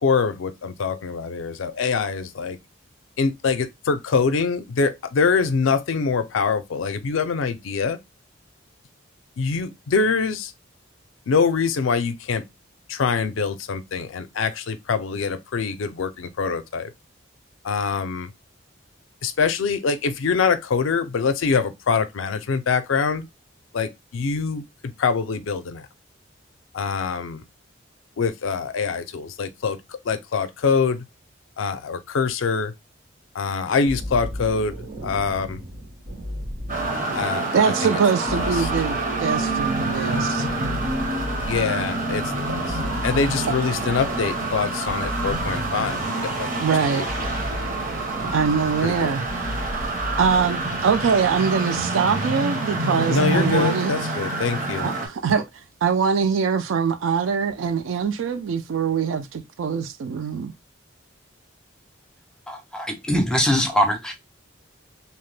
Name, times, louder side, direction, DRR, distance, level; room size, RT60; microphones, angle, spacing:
voice 1, 0.0-2.6 3.2-8.0 9.4-10.5 11.3-12.4 12.9-16.9 17.6-18.3 19.2-23.3 23.7-25.9 26.7-27.4 28.2-31.0 31.6-32.7 33.3-34.8 35.0-35.6 37.1-38.0 38.3-38.7 41.5-42.2 42.5-46.5 46.8-47.1 48.2-48.3 48.8-49.1 53.1-54.9, left 5 dB, 80° left, 0.4 m, -24 dB
sound 1, 33.9-51.5, equal, 60° right, 1.2 m, -35 dB
sound 2, 36.7-55.1, right 2 dB, 40° right, 0.7 m, -27 dB
voice 2, 37.5-40.5 46.6-47.1 48.3-49.5 50.2-53.9 54.8-55.5 55.8-60.5, right 6 dB, 80° right, 0.4 m, -23 dB
voice 3, 62.5-64.1, equal, 5° left, 0.4 m, -22 dB
2.8 x 2.1 x 3.1 m
head